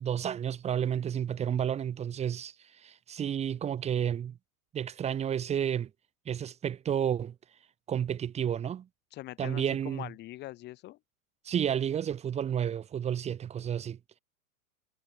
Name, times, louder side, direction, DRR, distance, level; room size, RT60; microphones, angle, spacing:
voice 1, 0.0-4.4 4.7-5.9 6.3-7.3 7.9-8.9 9.4-10.1 11.4-14.0, right 9 dB, 15° right, 6.3 m, -31 dB
voice 2, 9.1-11.0, left 16 dB, 20° left, 6.5 m, -43 dB
supercardioid pair, 175°, 45 cm